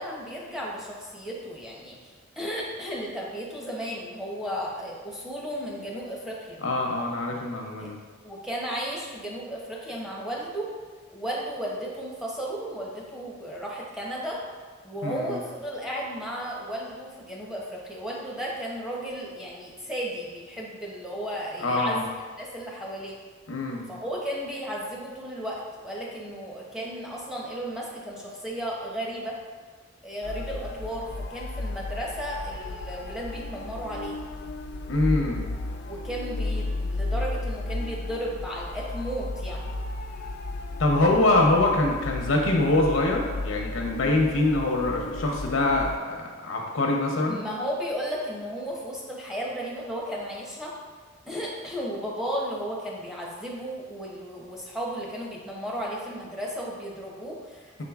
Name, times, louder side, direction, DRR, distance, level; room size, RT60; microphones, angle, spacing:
voice 1, 0.0-2.1 2.4-6.6 7.8-7.9 8.2-10.7 11.1-14.4 14.8-22.1 22.4-23.2 23.9-29.4 30.0-34.2 35.9-39.7 47.3-50.7 51.3-57.8, equal, 5° right, -4 dB, 0.6 m, -34 dB
voice 2, 6.6-8.0 15.0-15.4 21.6-22.0 23.5-23.8 34.9-35.4 40.8-47.4, left 2 dB, 90° left, 1 dB, 0.7 m, -24 dB
sound 1, 30.2-46.0, left 2 dB, 55° left, 0.3 m, -34 dB
4.9 x 3.7 x 2.3 m, 1.4 s
head